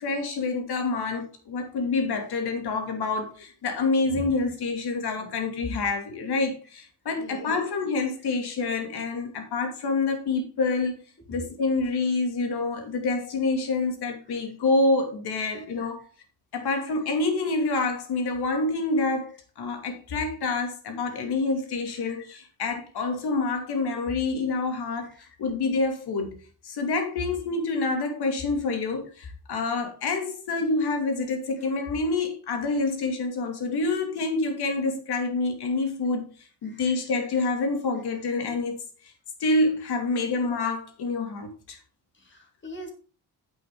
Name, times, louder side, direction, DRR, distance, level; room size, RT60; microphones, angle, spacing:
voice 1, 0.0-10.9 11.3-16.1 16.5-25.1 25.4-26.4 26.6-36.3 36.6-38.8 39.4-41.8, left 3 dB, 75° left, 2.7 m, -27 dB
voice 2, 7.2-7.5 22.0-22.1 25.2-25.3 36.6-36.8 42.2-42.9, equal, 30° left, 2.7 m, -43 dB
9.1 x 8.3 x 3.8 m
wide cardioid pair, 180°, 39 cm